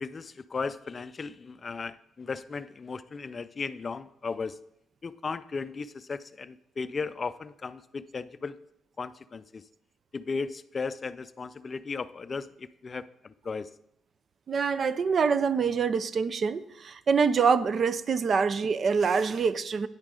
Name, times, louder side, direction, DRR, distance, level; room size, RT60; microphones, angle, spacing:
voice 1, 0.0-4.6 5.0-8.6 9.0-9.6 10.1-13.7, left 4 dB, 35° left, 14 dB, 0.4 m, -36 dB
voice 2, 14.5-19.9, right 5 dB, 50° right, 15 dB, 0.5 m, -25 dB
9.6 x 8.7 x 3.7 m, 0.79 s
cardioid pair, 90°, 0 cm